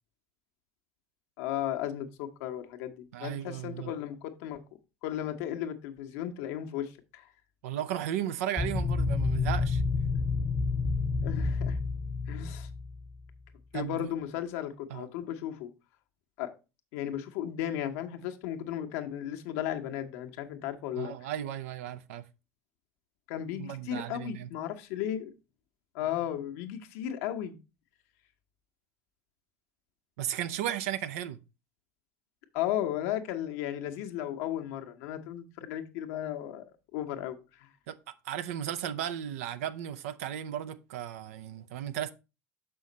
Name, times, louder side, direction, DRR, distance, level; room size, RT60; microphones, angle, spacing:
voice 1, 1.4-4.6 5.0-7.3 10.1-10.2 11.2-11.8 12.3-12.7 13.7-15.7 16.4-16.5 16.9-21.1 23.3-25.3 25.9-27.6 32.5-36.6 36.9-37.7, left 11 dB, 75° left, 1.1 m, -35 dB
voice 2, 3.1-3.9 7.6-9.8 13.7-14.1 14.9-15.1 21.0-22.2 23.6-24.5 30.2-31.4 37.9-38.0 38.2-42.1, right 11 dB, 80° right, 0.6 m, -35 dB
sound 1, 8.6-13.2, left 4 dB, 20° left, 0.8 m, -29 dB
6.5 x 5.6 x 4.0 m
hypercardioid pair, 75°, 8 cm